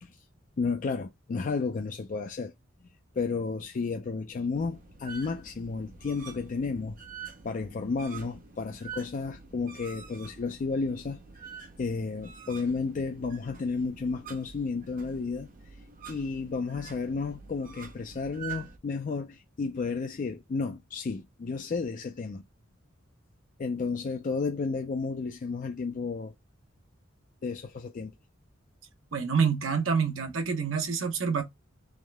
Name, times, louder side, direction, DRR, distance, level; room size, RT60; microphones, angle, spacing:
voice 1, 0.6-2.5 3.2-7.0 7.4-11.2 11.8-15.5 16.1-22.4 23.6-26.3 27.4-28.1, left 4 dB, 40° left, 0.4 m, -32 dB
sound 1, 4.5-18.8, right 6 dB, 45° right, 0.8 m, -47 dB
voice 2, 29.1-31.4, right 6 dB, 75° right, 0.8 m, -27 dB
3.5 x 3.2 x 3.4 m
head